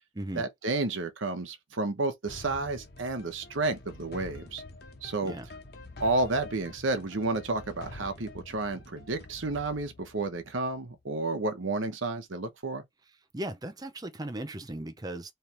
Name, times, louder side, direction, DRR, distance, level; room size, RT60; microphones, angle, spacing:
voice 1, 0.3-4.6 5.0-5.3 6.0-12.8, right 2 dB, 85° right, 1.0 m, -31 dB
sound 1, 2.3-11.1, left 2 dB, 55° left, 1.2 m, -47 dB
voice 2, 13.3-15.3, right 1 dB, 20° right, 0.6 m, -37 dB
4.4 x 3.2 x 3.4 m
head